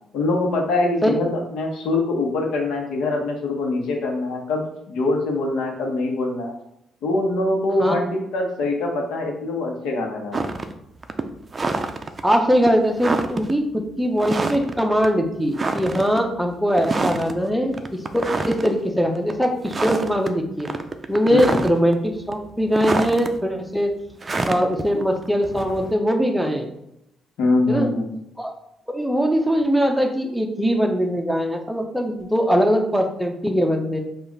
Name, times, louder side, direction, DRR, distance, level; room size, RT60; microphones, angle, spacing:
voice 1, 0.1-6.5 7.0-8.1 8.3-10.5 21.3-21.6 27.4-28.1, left 2 dB, 85° left, 1 dB, 1.0 m, -23 dB
sound 1, 10.3-10.7 11.0-12.2 12.7-12.8 13.0-13.5 14.2-14.8 15.0-15.1 15.6-16.2 16.8-17.3 17.7-18.7 19.2-19.3 19.7-20.3 20.6-21.9 22.3-23.3 24.2-25.9, right 3 dB, 30° right, 0.4 m, -26 dB
voice 2, 12.2-20.7 21.1-23.9 24.4-26.7 27.7-27.9 28.4-28.5 28.9-34.0, equal, ahead, 3 dB, 0.7 m, -21 dB
5.0 x 2.4 x 3.9 m, 0.81 s
cardioid pair, 90°, 0 cm